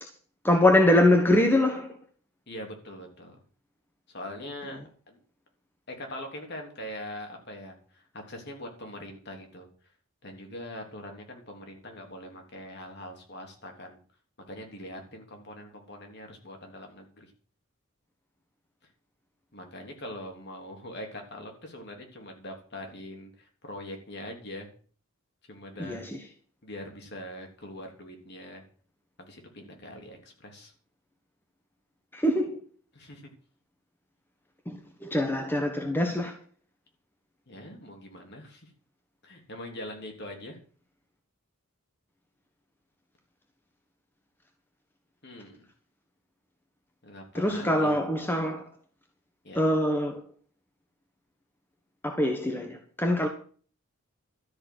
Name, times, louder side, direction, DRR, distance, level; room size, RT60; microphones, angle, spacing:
voice 1, 0.4-2.0 25.8-26.1 32.1-32.6 34.7-36.3 47.3-48.6 49.5-50.2 52.0-53.3, left 1 dB, 10° left, 1.4 m, -24 dB
voice 2, 2.5-3.3 4.1-4.8 5.1-5.2 5.9-9.7 10.2-14.0 14.5-17.3 19.5-24.7 25.5-26.0 26.6-28.6 29.2-30.7 32.9-33.2 37.5-38.7 39.2-40.6 45.2-45.7 47.0-48.0 49.4-49.6, left 1 dB, 50° left, 3.3 m, -42 dB
13.0 x 7.1 x 8.2 m
head